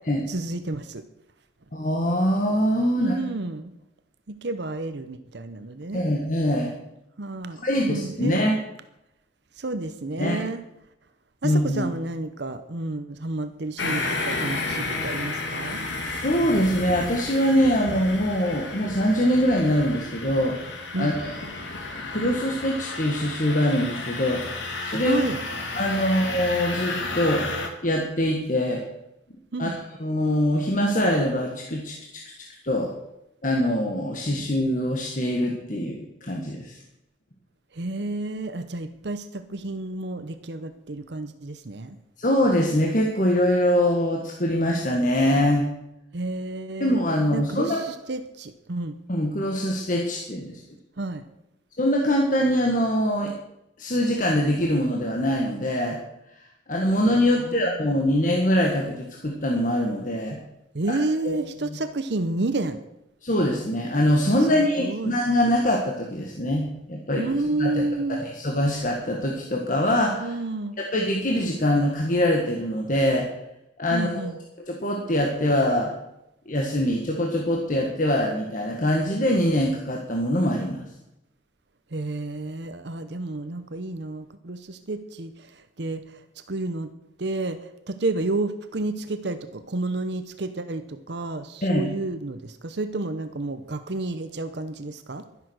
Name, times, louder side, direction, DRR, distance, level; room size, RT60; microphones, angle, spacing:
voice 1, 0.3-1.0 3.0-3.7 4.3-6.1 7.2-8.4 9.6-10.6 11.4-15.9 20.9-21.1 25.0-25.4 29.5-29.8 37.7-42.0 46.1-47.0 47.3-49.0 51.0-51.2 57.4-57.8 60.7-62.8 64.5-65.1 67.2-68.2 70.2-70.8 73.9-74.4 81.9-86.9 87.2-95.3, right 2 dB, 60° right, 10 dB, 0.8 m, -30 dB
voice 2, 1.7-3.2 5.9-6.7 7.6-8.5 10.2-10.4 11.4-11.8 16.0-20.6 21.0-21.3 22.0-24.4 24.8-25.2 25.8-27.5 27.8-28.8 29.6-32.2 32.6-32.9 33.4-36.8 42.2-45.7 46.8-47.8 49.1-50.6 51.8-53.3 53.8-56.0 56.7-60.4 60.9-61.0 61.2-61.5 63.2-67.2 67.6-67.7 68.1-70.3 70.8-73.3 73.8-74.3 74.7-75.9 76.4-80.9 91.6-91.9, equal, 45° left, 1 dB, 1.6 m, -23 dB
sound 1, 13.8-27.7, left 3 dB, 75° left, 2.5 m, -32 dB
12.0 x 10.5 x 6.4 m, 0.87 s
head